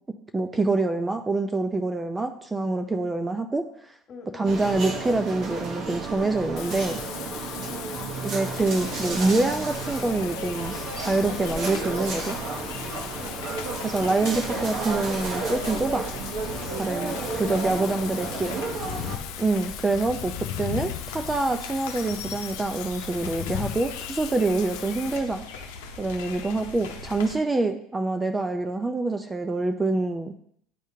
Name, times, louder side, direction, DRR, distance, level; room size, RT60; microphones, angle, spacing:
voice 1, 0.3-3.6 4.3-7.0 8.2-12.4 13.8-16.1 16.7-18.6 19.4-20.3 20.6-25.4 26.0-30.3, right 2 dB, 15° right, 6 dB, 0.4 m, -26 dB
voice 2, 4.1-4.5 7.6-8.0 13.2-13.6 17.0-19.4 24.7-25.4, left 4 dB, 40° left, 2 dB, 1.5 m, -45 dB
sound 1, 4.5-19.2, right 3 dB, 55° right, 0.9 m, -32 dB
Wind / Rain, 6.6-25.2, left 12 dB, 65° left, 0.4 m, -38 dB
sound 2, 8.5-27.3, left 4 dB, 90° left, 0.7 m, -40 dB
9.8 x 3.5 x 2.8 m, 0.66 s
supercardioid pair, 105°, 0 cm